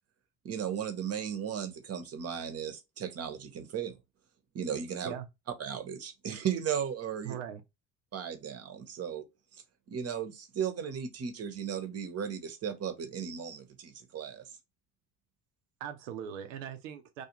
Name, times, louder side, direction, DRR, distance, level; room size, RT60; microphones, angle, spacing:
voice 1, 0.4-3.9 4.5-5.1 5.6-7.3 8.1-9.2 9.5-9.6 9.9-14.5, right 8 dB, 40° right, 0.9 m, -36 dB
voice 2, 7.2-7.6 15.8-17.2, right 9 dB, 85° right, 0.6 m, -40 dB
2.4 x 2.3 x 2.9 m
hypercardioid pair, 65°, 36 cm